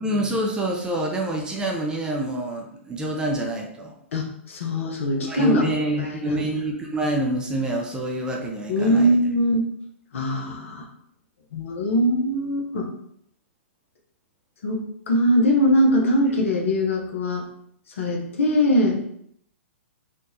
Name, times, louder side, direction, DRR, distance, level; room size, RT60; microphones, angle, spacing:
voice 1, 0.0-3.9 5.2-9.2, right 1 dB, 10° right, 0 dB, 0.5 m, -27 dB
voice 2, 4.1-5.6 6.0-6.5 8.7-9.6 10.1-10.9 11.5-12.9 14.6-17.5 18.0-19.0, equal, 70° left, 1 dB, 0.8 m, -22 dB
3.7 x 2.4 x 2.7 m, 0.69 s
hypercardioid pair, 125°, 7 cm